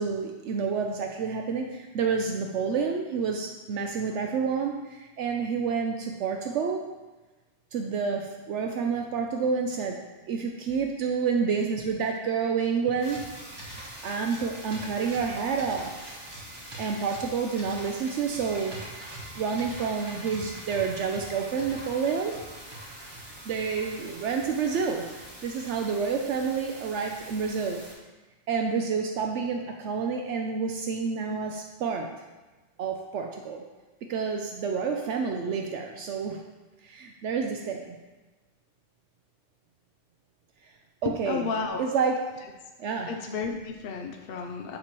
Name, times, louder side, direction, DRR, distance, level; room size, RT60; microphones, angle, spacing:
voice 1, 0.0-6.9 7.7-10.0 10.3-13.3 13.6-16.1 16.8-18.8 19.4-22.4 23.5-25.1 25.4-27.8 28.5-32.1 32.8-33.6 34.0-36.4 36.8-38.0 41.0-41.4 41.8-42.2 42.8-43.1, right 5 dB, 75° right, 2 dB, 0.9 m, -29 dB
sound 1, 13.0-27.9, right 1 dB, 20° right, 1.3 m, -43 dB
voice 2, 41.0-42.0 42.4-42.5 43.1-44.8, left 5 dB, 60° left, 2 dB, 0.7 m, -33 dB
7.5 x 3.0 x 5.9 m, 1.2 s
omnidirectional pair, 1.2 m